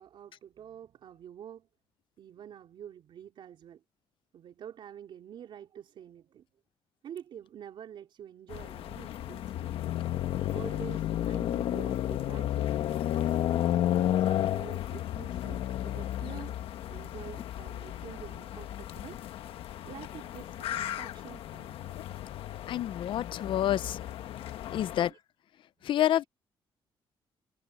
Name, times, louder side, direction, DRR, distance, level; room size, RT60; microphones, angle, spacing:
voice 1, 0.0-1.7 2.2-3.8 4.3-6.5 7.0-9.8 10.5-13.4 14.2-16.6 16.9-19.2 19.8-21.8 23.1-23.2 23.5-23.6 25.1-25.2, right 9 dB, 65° right, 4.2 m, -47 dB
sound 1, 8.5-25.1, left 12 dB, 90° left, 1.1 m, -33 dB
voice 2, 22.7-24.0 24.7-25.1 25.8-26.2, left 11 dB, 65° left, 0.5 m, -28 dB
cardioid pair, 150°, 9 cm